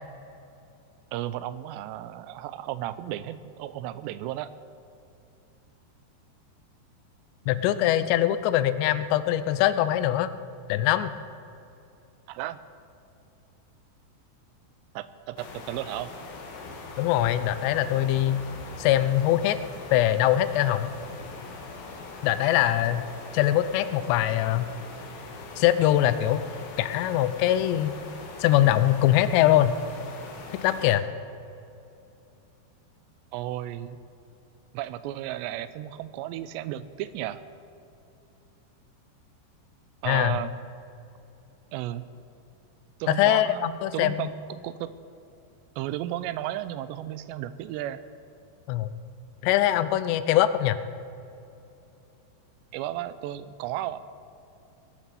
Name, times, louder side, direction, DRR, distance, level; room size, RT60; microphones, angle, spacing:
voice 1, 1.1-4.5 12.3-12.6 15.0-16.1 33.3-34.0 34.7-37.4 40.0-40.6 41.7-42.1 43.0-44.9 45.8-48.0 52.7-54.0, right 13 dB, 85° right, 14 dB, 2.7 m, -34 dB
voice 2, 7.5-10.3 10.7-11.1 17.0-18.4 18.8-19.6 19.9-20.9 22.2-23.1 23.3-24.7 25.6-26.4 26.8-27.9 28.4-29.8 30.5-31.0 40.1-40.4 43.2-44.3 48.7-48.9 49.4-50.8, left 13 dB, 85° left, 13 dB, 2.8 m, -22 dB
sound 1, 15.4-31.0, left 3 dB, 65° left, 3.0 m, -42 dB
20.0 x 7.3 x 6.8 m, 2.7 s
omnidirectional pair, 5.0 m